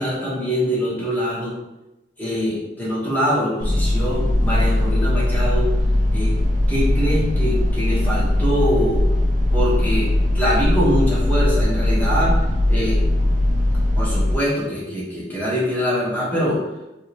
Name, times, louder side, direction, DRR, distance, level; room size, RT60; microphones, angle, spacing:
voice 1, 0.0-1.6 2.2-5.7 6.1-6.3 6.7-9.1 9.5-10.1 10.3-12.4 12.7-13.0 13.9-16.6, equal, 10° left, -7 dB, 1.1 m, -23 dB
sound 1, 3.6-14.3, left 1 dB, 45° right, 0.4 m, -19 dB
3.6 x 2.4 x 2.8 m, 0.97 s
head